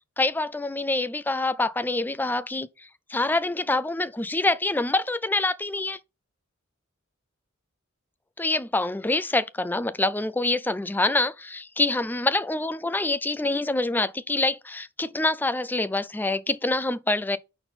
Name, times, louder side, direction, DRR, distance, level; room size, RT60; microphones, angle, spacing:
voice 1, 0.2-6.0 8.4-17.4, left 2 dB, 10° left, 0.4 m, -26 dB
5.7 x 4.4 x 5.4 m
head